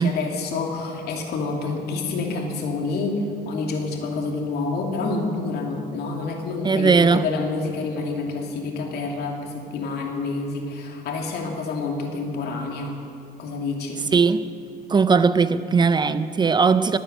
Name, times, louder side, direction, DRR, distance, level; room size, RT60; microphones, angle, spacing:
voice 1, 0.0-13.0 13.4-14.0, left 3 dB, 70° left, 1 dB, 2.6 m, -28 dB
voice 2, 6.6-7.2 14.1-14.5 14.9-17.0, right 5 dB, 25° right, 13 dB, 0.5 m, -19 dB
20.0 x 9.0 x 8.0 m, 2.6 s
cardioid pair, 110°, 17 cm